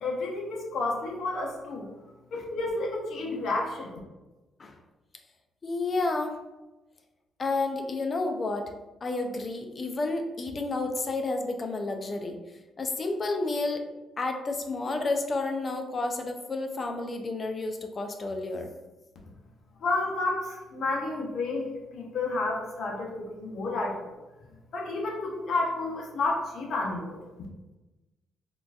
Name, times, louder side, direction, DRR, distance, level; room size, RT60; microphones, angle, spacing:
voice 1, 0.0-1.9 2.3-3.9 19.8-24.0 24.7-27.2, left 2 dB, 65° left, -1 dB, 0.7 m, -30 dB
voice 2, 5.6-6.3 7.4-8.7 9.0-12.4 12.8-13.8 14.2-18.7, left 3 dB, 40° left, 4 dB, 0.4 m, -30 dB
3.7 x 2.5 x 2.3 m, 1.1 s
cardioid pair, 90°, 0 cm